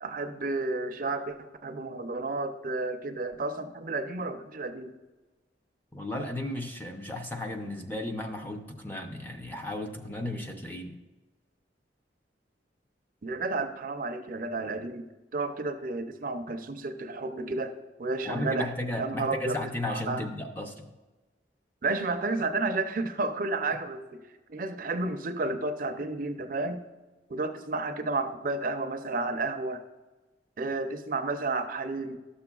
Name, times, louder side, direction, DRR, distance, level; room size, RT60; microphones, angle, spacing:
voice 1, 0.0-1.4 1.6-4.9 13.2-15.0 15.3-17.7 18.0-18.7 19.0-19.6 19.9-20.3 21.8-24.2 24.5-26.8 27.3-29.8 30.6-32.2, right 3 dB, 50° right, 7 dB, 0.5 m, -31 dB
voice 2, 5.9-11.0 18.2-20.9, left 1 dB, 10° left, 3 dB, 0.5 m, -34 dB
12.0 x 6.9 x 2.3 m, 1.2 s
head